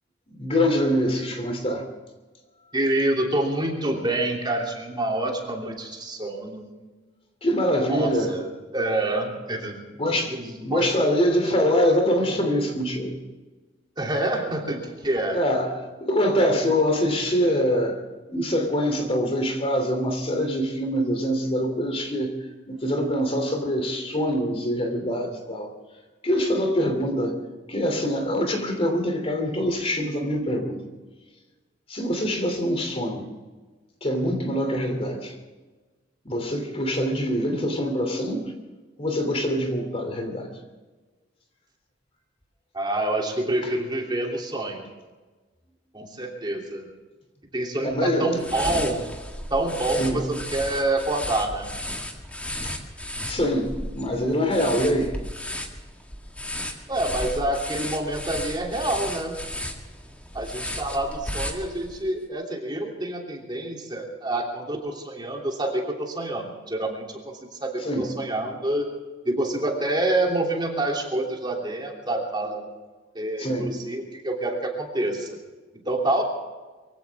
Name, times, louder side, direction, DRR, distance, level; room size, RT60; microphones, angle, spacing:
voice 1, 0.4-1.9 7.4-8.4 10.0-10.4 10.6-13.2 15.3-18.0 18.3-22.3 22.7-25.7 26.2-27.4 27.7-30.9 31.9-33.3 34.0-35.3 36.2-38.5 39.0-40.5 47.8-48.4 50.0-50.2 52.6-52.8 53.3-55.2 67.8-68.1 73.4-73.7, equal, 30° left, 5 dB, 3.0 m, -24 dB
voice 2, 2.7-6.7 7.9-8.5 8.7-9.8 10.2-10.9 14.0-15.4 42.7-44.9 45.9-46.9 47.5-49.0 49.5-51.7 56.9-59.3 60.3-67.3 67.6-68.9 69.2-72.6 73.1-75.4 75.8-76.2, right 1 dB, 25° right, 0 dB, 3.0 m, -27 dB
sound 1, 48.4-62.1, left 1 dB, 10° left, 1.9 m, -34 dB
24.0 x 16.0 x 3.6 m, 1.3 s
head